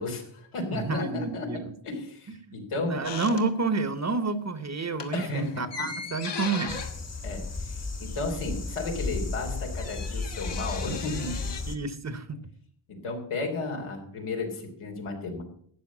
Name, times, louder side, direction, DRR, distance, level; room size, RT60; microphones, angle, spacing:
voice 1, 0.0-1.5 1.8-3.0 5.1-5.7 7.2-11.4 12.9-15.4, left 3 dB, 90° left, 2 dB, 3.5 m, -33 dB
voice 2, 0.7-1.6 2.8-6.8 11.7-12.4, right 3 dB, 35° right, 12 dB, 1.1 m, -29 dB
sound 1, 3.0-4.0 4.3-4.5 4.9-8.3 8.6-8.7 8.9-11.6, left 5 dB, 55° left, 1.7 m, -39 dB
sound 2, 6.7-11.8, left 3 dB, 30° left, 1.5 m, -34 dB
13.0 x 8.9 x 6.1 m, 0.62 s
wide cardioid pair, 115°, 49 cm